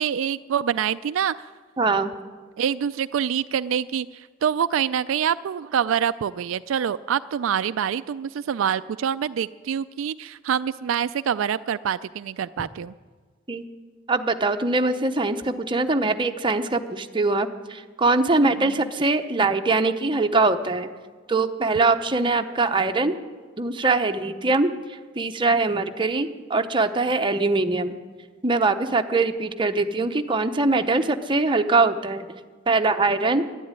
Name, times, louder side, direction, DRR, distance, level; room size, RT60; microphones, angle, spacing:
voice 1, 0.0-1.5 2.6-12.9 18.6-18.8, right 8 dB, 80° right, 13 dB, 0.4 m, -26 dB
voice 2, 1.8-2.1 13.5-13.6 14.1-20.9 21.3-23.2 23.6-27.9 28.4-32.3 32.7-33.4, right 3 dB, 25° right, 6 dB, 0.8 m, -22 dB
11.5 x 11.5 x 9.6 m, 1.5 s
head